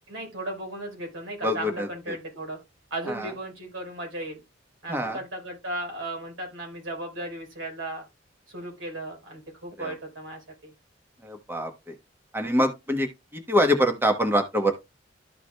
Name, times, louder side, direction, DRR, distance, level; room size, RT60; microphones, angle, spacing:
voice 1, 0.1-2.6 2.9-4.4 4.8-8.0 8.5-10.7, right 1 dB, 85° right, 4.2 m, -36 dB
voice 2, 1.4-1.9 3.1-3.3 4.9-5.2 9.8-9.9 11.2-11.9 12.3-13.1 13.3-14.7, equal, 10° right, 1.0 m, -24 dB
13.0 x 4.8 x 2.2 m
head